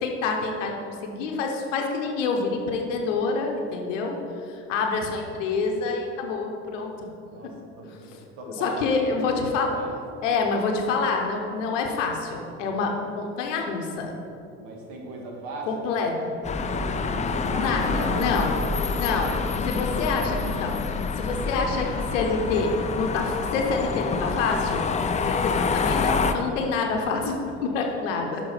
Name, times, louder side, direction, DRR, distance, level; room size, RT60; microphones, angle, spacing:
voice 1, 0.0-4.2 4.5-7.1 7.4-7.5 8.5-9.7 10.2-14.2 15.7-16.3 17.5-18.6 18.9-24.8 25.1-28.4, left 4 dB, 90° left, 2 dB, 0.8 m, -27 dB
voice 2, 7.2-7.9 8.4-9.2 9.5-10.0 14.6-15.7 16.0-16.2 16.6-18.5 28.0-28.4, right 2 dB, 70° right, 0 dB, 1.5 m, -39 dB
sound 1, 16.4-26.3, left 4 dB, 20° left, 0.3 m, -27 dB
6.4 x 4.9 x 4.8 m, 2.7 s
hypercardioid pair, 75°, 36 cm